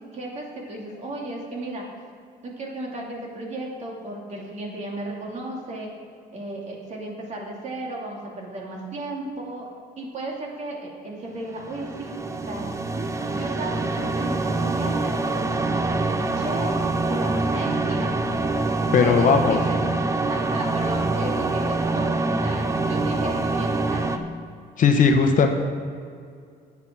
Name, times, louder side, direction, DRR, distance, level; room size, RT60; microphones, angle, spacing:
voice 1, 0.1-1.8 2.4-5.9 6.3-9.7 10.0-12.1 12.5-15.4 15.9-16.8 17.1-18.1 19.0-19.9 20.3-24.1, right 2 dB, 40° right, -1 dB, 2.5 m, -34 dB
sound 1, 11.5-24.2, right 3 dB, 20° right, 0.7 m, -25 dB
voice 2, 18.9-19.6 24.8-25.5, left 5 dB, 50° left, 5 dB, 1.0 m, -17 dB
8.5 x 8.4 x 6.1 m, 2.3 s
cardioid pair, 110°, 17 cm